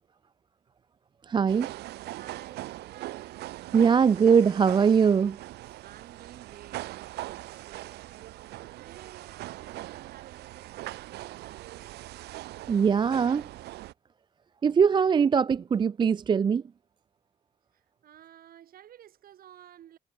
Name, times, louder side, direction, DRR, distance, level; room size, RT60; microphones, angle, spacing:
voice 1, 1.3-1.7 3.7-5.4 12.7-13.5 14.6-16.6, right 6 dB, 25° right, 0.5 m, -21 dB
sound 1, 1.5-13.9, right 17 dB, 80° right, 1.1 m, -41 dB
voice 2, 2.1-3.4 5.8-11.7 17.7-20.0, right 11 dB, 60° right, 7.3 m, -53 dB
cardioid pair, 110°, 17 cm